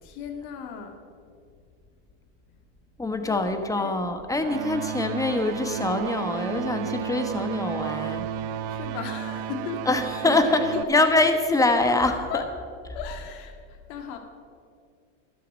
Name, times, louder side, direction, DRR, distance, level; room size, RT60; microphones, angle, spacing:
voice 1, 0.0-1.0 3.2-4.0 8.7-11.1 11.6-12.6 12.9-14.2, left 6 dB, 60° left, 5 dB, 2.0 m, -36 dB
voice 2, 3.0-8.2 9.9-12.1, left 2 dB, 10° left, 7 dB, 1.3 m, -24 dB
sound 1, 4.4-10.8, right 9 dB, 70° right, 1.0 m, -32 dB
13.0 x 12.5 x 5.3 m, 2.3 s
supercardioid pair, 110°, 37 cm